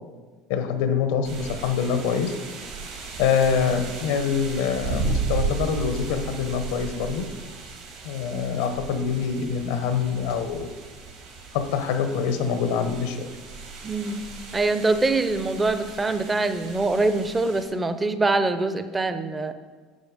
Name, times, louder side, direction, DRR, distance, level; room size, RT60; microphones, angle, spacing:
voice 1, 0.5-2.3 3.2-7.3 8.0-10.7 11.5-13.3, left 6 dB, 90° left, 8 dB, 0.9 m, -25 dB
sound 1, 1.2-17.6, right 4 dB, 70° right, 2.4 m, -35 dB
voice 2, 13.8-14.2 14.5-19.5, right 3 dB, 15° right, 11 dB, 0.5 m, -24 dB
9.6 x 6.6 x 4.9 m, 1.4 s
cardioid pair, 145°, 0 cm